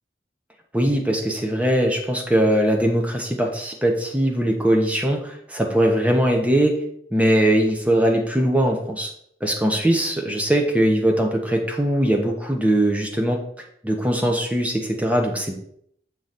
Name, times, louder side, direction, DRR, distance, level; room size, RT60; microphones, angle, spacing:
voice 1, 0.7-6.8 7.1-9.1 9.4-13.4 13.8-15.5, right 1 dB, 10° right, 2 dB, 1.0 m, -21 dB
7.0 x 3.9 x 6.0 m, 0.70 s
head